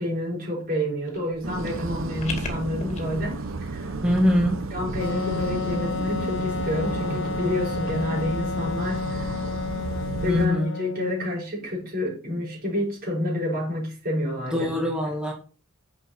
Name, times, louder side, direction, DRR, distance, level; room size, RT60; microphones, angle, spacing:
voice 1, 0.0-3.4 3.7-3.9 4.7-9.4 10.1-14.8, left 1 dB, 50° right, 5.1 m, -29 dB
sound 1, 1.1-3.0, left 3 dB, 35° left, 2.3 m, -37 dB
sound 2, 1.4-10.5, right 3 dB, 80° right, 0.8 m, -32 dB
voice 2, 4.0-4.6 10.3-10.7 14.4-15.3, left 1 dB, 5° right, 1.5 m, -23 dB
Wind instrument woodwind instrument, 5.0-11.5, left 4 dB, 65° left, 0.8 m, -31 dB
10.5 x 6.2 x 4.3 m
head